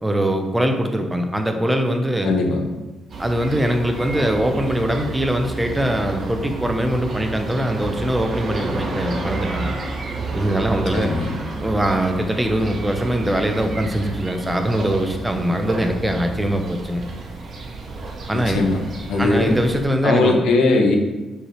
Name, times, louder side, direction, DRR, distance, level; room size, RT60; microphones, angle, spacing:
voice 1, 0.0-2.3 3.2-9.7 10.2-11.1 11.6-17.0 18.3-18.6 19.2-20.4, right 1 dB, 15° right, 5 dB, 0.9 m, -22 dB
voice 2, 2.2-2.6 10.9-11.3 18.5-18.8 19.1-19.6 20.0-21.0, left 3 dB, 75° left, 2 dB, 1.1 m, -19 dB
sound 1, 3.1-19.8, right 3 dB, 55° right, 1.2 m, -31 dB
6.2 x 4.7 x 3.3 m, 1.1 s
supercardioid pair, 60°, 0 cm